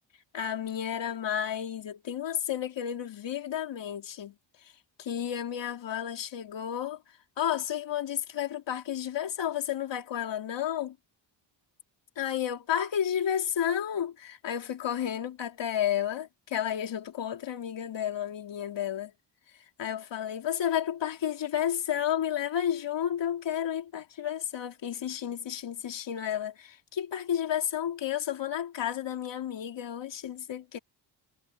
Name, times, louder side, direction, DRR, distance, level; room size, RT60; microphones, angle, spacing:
voice 1, 0.3-4.3 5.0-7.0 7.4-11.0 12.1-19.1 19.8-30.8, left 10 dB, 70° left, 3.4 m, -32 dB
wide cardioid pair, 135°, 46 cm